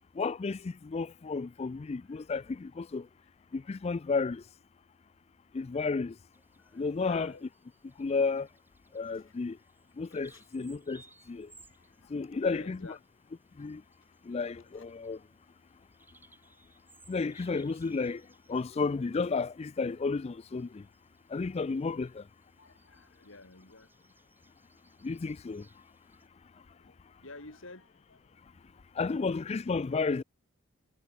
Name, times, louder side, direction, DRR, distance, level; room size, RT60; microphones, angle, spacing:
voice 1, 0.2-3.1 3.5-4.4 5.5-6.1 6.7-7.3 8.0-8.5 8.9-9.6 10.0-11.0 11.3-11.5 12.1-12.8 13.6-13.8 14.3-15.2 17.1-18.2 18.5-20.8 21.3-22.2 25.0-25.6 29.0-30.2, left 4 dB, 30° left, 0.3 m, -32 dB
Bird vocalization bird call bird song, 6.3-26.3, right 3 dB, 10° right, 1.9 m, -64 dB
voice 2, 6.6-7.5 9.1-9.3 10.1-10.7 11.7-13.0 14.3-14.9 16.4-16.5 22.6-24.1 26.6-29.4, left 2 dB, 60° left, 3.2 m, -53 dB
head